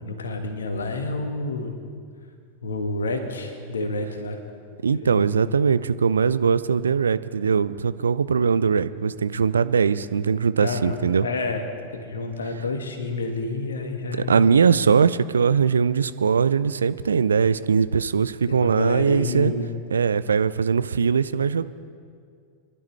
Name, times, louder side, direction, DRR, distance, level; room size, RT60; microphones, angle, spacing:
voice 1, 0.0-1.7 2.6-4.4 4.9-5.2 10.6-11.6 11.9-14.4 18.5-19.7, left 2 dB, 70° left, 5 dB, 1.5 m, -29 dB
voice 2, 4.8-11.3 14.3-19.5 19.9-21.6, right 6 dB, 70° right, 15 dB, 0.4 m, -21 dB
23.0 x 12.0 x 3.2 m, 2.2 s
figure-of-eight pair, 90°, 0 cm